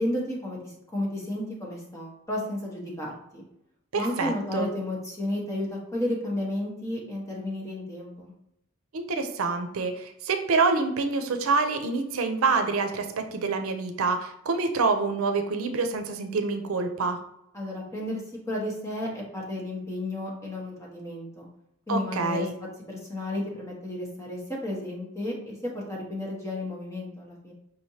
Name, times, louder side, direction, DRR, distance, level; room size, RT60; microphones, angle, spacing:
voice 1, 0.0-3.4 3.9-8.3 17.5-21.4 21.9-22.5 22.9-27.5, left 1 dB, 15° left, -3 dB, 1.1 m, -32 dB
voice 2, 3.9-4.7 8.9-17.2 21.9-22.5, right 4 dB, 90° right, 7 dB, 0.5 m, -26 dB
5.1 x 3.1 x 2.8 m, 0.80 s
head